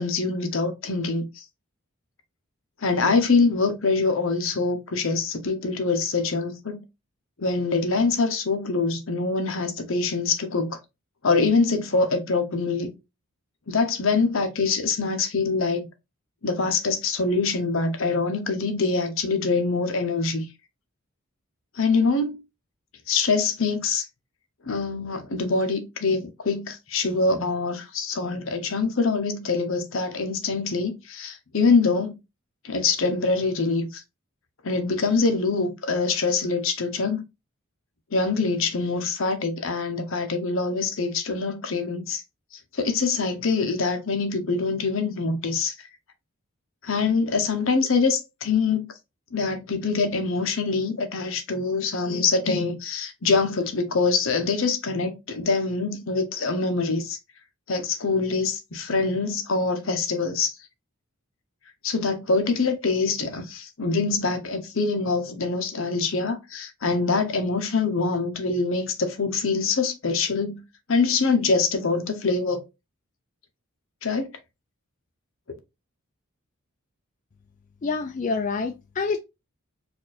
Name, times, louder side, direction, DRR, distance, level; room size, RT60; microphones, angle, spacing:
voice 1, 0.0-1.4 2.8-6.8 7.4-10.8 11.2-12.9 13.7-15.9 16.4-20.5 21.8-22.4 23.1-24.0 24.7-32.1 32.6-34.0 34.6-37.2 38.1-42.2 42.7-45.7 46.8-48.9 49.3-57.2 57.7-60.5 61.8-72.6 74.0-74.3, left 4 dB, 65° left, 0.9 m, -24 dB
voice 2, 77.8-79.2, left 4 dB, 35° left, 0.4 m, -27 dB
4.3 x 2.6 x 4.1 m
head